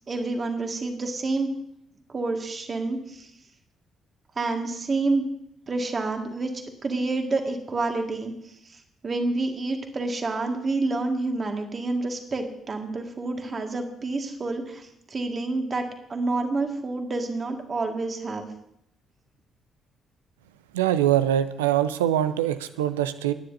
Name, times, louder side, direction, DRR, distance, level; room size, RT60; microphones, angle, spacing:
voice 1, 0.1-1.5 2.1-3.3 4.4-5.2 5.7-6.5 6.8-18.5, right 3 dB, 40° right, 4 dB, 2.0 m, -28 dB
voice 2, 20.7-23.3, right 11 dB, 80° right, 12 dB, 0.5 m, -23 dB
27.0 x 10.0 x 2.8 m, 0.75 s
figure-of-eight pair, 40°, 0 cm